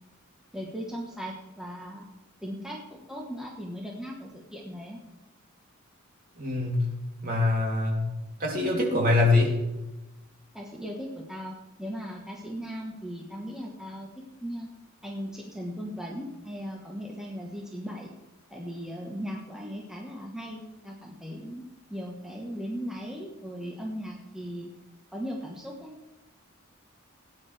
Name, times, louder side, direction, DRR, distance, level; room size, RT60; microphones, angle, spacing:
voice 1, 0.5-2.0 2.4-5.0 10.5-14.1 14.4-14.7 15.0-18.1 18.5-21.6 21.9-24.7 25.1-25.9, equal, 5° right, -2 dB, 1.2 m, -38 dB
voice 2, 6.4-6.9 7.2-8.1 8.4-9.5, left 2 dB, 40° right, -2 dB, 3.0 m, -24 dB
17.5 x 9.6 x 3.4 m, 0.99 s
head